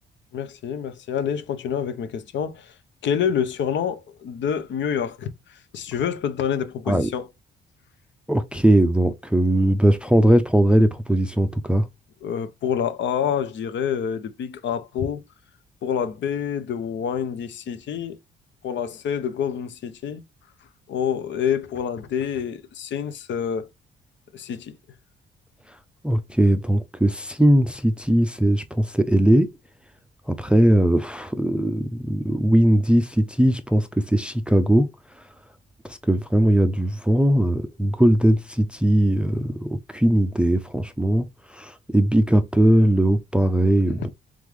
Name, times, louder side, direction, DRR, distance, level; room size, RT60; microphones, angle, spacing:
voice 1, 0.3-2.7 3.0-7.3 12.2-15.2 15.8-18.2 18.6-20.2 20.9-23.7 24.3-24.8, left 8 dB, 65° left, 0.7 m, -27 dB
voice 2, 8.3-11.9 26.0-29.5 30.4-34.9 35.9-41.3 41.5-44.1, right 1 dB, 5° right, 0.4 m, -19 dB
3.6 x 3.6 x 3.1 m
cardioid pair, 90°, 20 cm